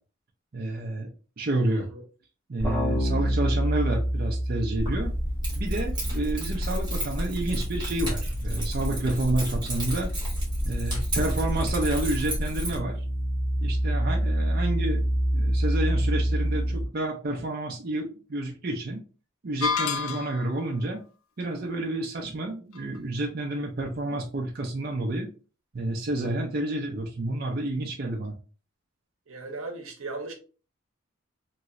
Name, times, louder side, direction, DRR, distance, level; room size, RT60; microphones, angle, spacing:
voice 1, 0.5-1.1 1.4-1.9 2.5-5.1 5.5-10.1 10.6-13.0 13.6-15.0 15.3-19.0 19.4-21.0 21.4-25.3 25.7-28.3, right 2 dB, 45° right, 0.5 m, -29 dB
voice 2, 1.7-2.0 29.3-30.3, right 3 dB, 80° right, 0.8 m, -37 dB
sound 1, 2.6-7.0 7.3-16.8, equal, 10° left, 1.2 m, -28 dB
Keys jangling, 4.8-12.8, equal, 20° right, 1.3 m, -30 dB
sound 2, 19.6-20.6, left 6 dB, 80° left, 0.4 m, -28 dB
3.0 x 2.9 x 2.5 m
head